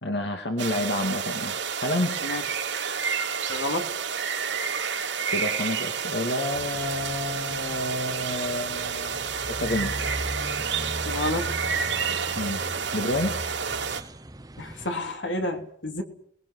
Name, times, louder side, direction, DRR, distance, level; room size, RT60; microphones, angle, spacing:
voice 1, 0.0-2.2 5.3-9.2 9.5-9.9 12.1-12.6 12.9-13.4, left 1 dB, 65° left, 4 dB, 2.3 m, -29 dB
sound 1, 0.6-14.0, right 6 dB, 85° right, 3.2 m, -30 dB
voice 2, 3.5-3.9 11.1-11.6 14.6-16.0, left 1 dB, 85° left, 4 dB, 3.5 m, -30 dB
sound 2, 6.5-14.9, right 1 dB, 20° right, 1.0 m, -38 dB
29.0 x 20.0 x 6.5 m, 0.67 s
head